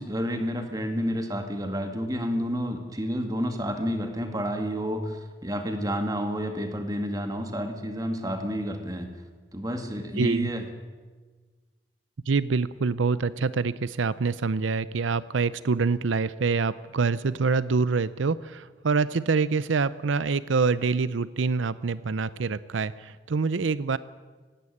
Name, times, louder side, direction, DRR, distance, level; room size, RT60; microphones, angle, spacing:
voice 1, 0.0-9.1 9.5-10.6, equal, 20° right, 6 dB, 2.2 m, -30 dB
voice 2, 10.2-10.5 12.3-24.0, right 4 dB, 90° right, 17 dB, 0.6 m, -26 dB
18.0 x 16.0 x 10.0 m, 1.4 s
head